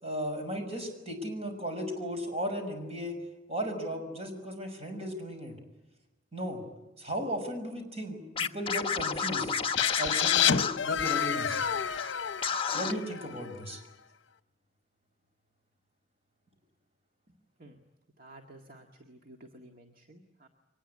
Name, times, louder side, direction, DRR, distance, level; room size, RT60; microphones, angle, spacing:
voice 1, 0.0-3.2 3.5-5.5 6.3-6.6 7.0-9.5 10.0-11.6 12.7-13.8, equal, 35° right, 5 dB, 5.9 m, -35 dB
Scratching (performance technique), 8.4-11.7 12.0-12.1 12.4-12.9, left 6 dB, 30° left, 1.1 m, -31 dB
sound 1, 9.8-13.5, left 8 dB, 70° left, 0.8 m, -29 dB
voice 2, 18.2-20.5, right 1 dB, 50° right, 3 dB, 1.9 m, -53 dB
24.0 x 20.0 x 9.8 m, 1.0 s
head